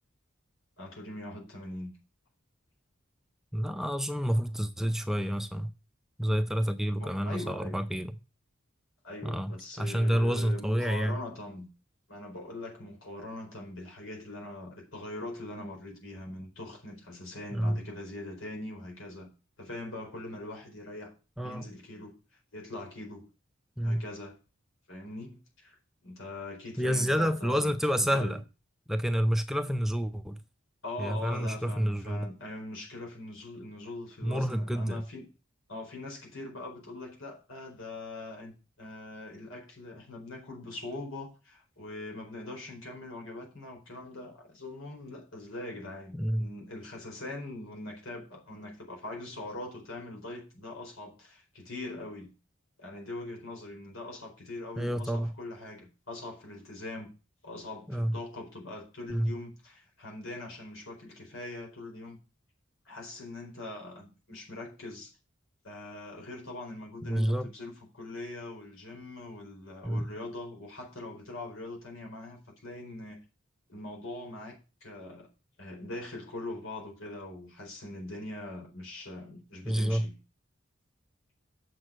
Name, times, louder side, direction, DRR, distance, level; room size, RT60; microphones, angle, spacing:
voice 1, 0.8-1.9 7.0-7.8 9.0-11.7 12.1-19.3 19.6-21.1 21.4-22.1 22.5-23.3 23.8-24.4 24.9-28.4 30.8-35.3 35.7-38.5 38.8-52.3 52.8-57.1 57.4-62.2 62.8-65.1 65.6-73.2 73.7-75.3 75.6-80.2, left 2 dB, 85° left, 4.4 m, -42 dB
voice 2, 3.5-5.7 6.2-8.2 9.2-11.2 17.5-17.8 21.4-21.6 23.8-24.0 26.8-28.4 28.9-30.4 31.0-32.3 34.2-35.0 46.1-46.5 54.8-55.3 57.9-58.2 59.1-59.3 67.0-67.5 69.8-70.1 79.7-80.1, equal, ahead, 0.4 m, -29 dB
7.5 x 6.4 x 6.3 m
head